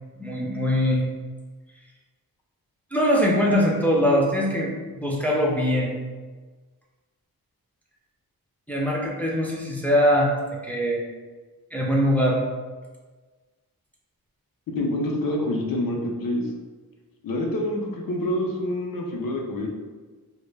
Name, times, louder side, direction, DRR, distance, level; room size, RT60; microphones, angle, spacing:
voice 1, 0.2-1.1 2.9-5.9 8.7-10.3 10.6-11.0 11.7-12.4, equal, 5° left, -3 dB, 0.4 m, -22 dB
voice 2, 14.7-16.5 17.2-19.7, left 1 dB, 65° left, 1 dB, 0.5 m, -27 dB
2.1 x 2.1 x 3.2 m, 1.4 s
wide cardioid pair, 90°, 37 cm